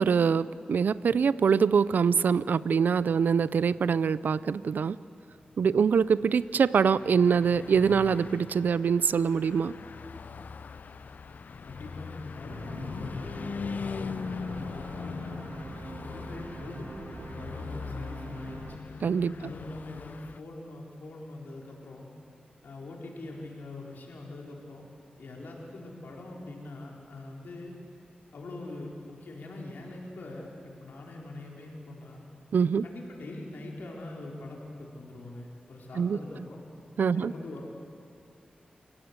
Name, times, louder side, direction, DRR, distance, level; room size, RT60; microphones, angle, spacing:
voice 1, 0.0-5.0 5.6-9.7 19.0-19.5 32.5-32.8 36.0-36.2 37.0-37.3, right 6 dB, 80° right, 18 dB, 0.5 m, -24 dB
Car passing by / Truck, 6.0-20.4, left 5 dB, 65° left, 0.5 m, -40 dB
voice 2, 11.6-15.5 16.0-18.8 19.4-22.1 22.6-24.8 25.2-27.7 28.3-32.2 32.8-36.6 37.1-37.7, left 2 dB, 85° left, -1 dB, 4.1 m, -43 dB
sound 1, 12.5-18.8, right 3 dB, 65° right, 2.6 m, -44 dB
28.0 x 16.0 x 8.1 m, 2.5 s
wide cardioid pair, 75°, 3 cm